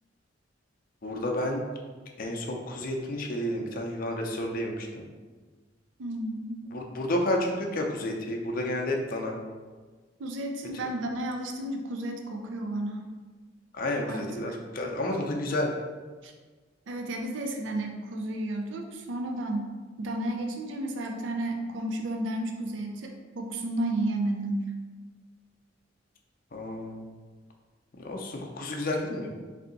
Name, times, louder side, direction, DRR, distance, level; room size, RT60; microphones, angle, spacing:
voice 1, 1.0-1.6 2.2-5.1 6.7-9.4 13.7-15.7 26.5-27.0 28.0-29.3, left 1 dB, 50° left, 1 dB, 0.5 m, -31 dB
voice 2, 6.0-6.6 10.2-13.1 14.1-14.6 16.2-16.3 16.9-19.7 20.0-24.7, right 1 dB, 75° right, 3 dB, 0.4 m, -32 dB
3.3 x 2.7 x 3.9 m, 1.4 s
head